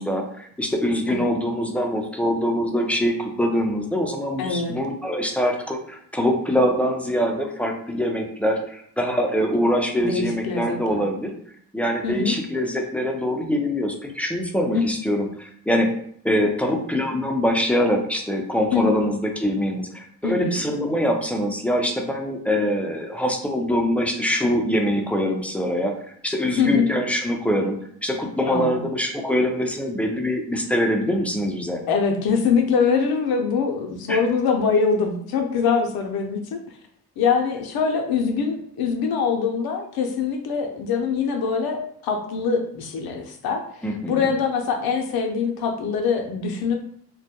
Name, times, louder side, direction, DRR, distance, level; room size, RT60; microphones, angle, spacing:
voice 1, 0.0-11.3 11.7-15.9 16.2-25.9 26.2-27.8 28.0-31.8 34.1-34.2 43.8-44.3, equal, 5° left, 2 dB, 0.4 m, -24 dB
voice 2, 4.4-4.7 10.0-11.0 12.0-12.3 14.7-14.9 18.7-18.9 20.2-20.6 26.6-26.8 28.5-28.8 31.9-36.6 37.2-43.6 44.1-46.8, left 5 dB, 65° left, 4 dB, 0.6 m, -23 dB
2.2 x 2.1 x 2.8 m, 0.65 s
supercardioid pair, 60°, 40 cm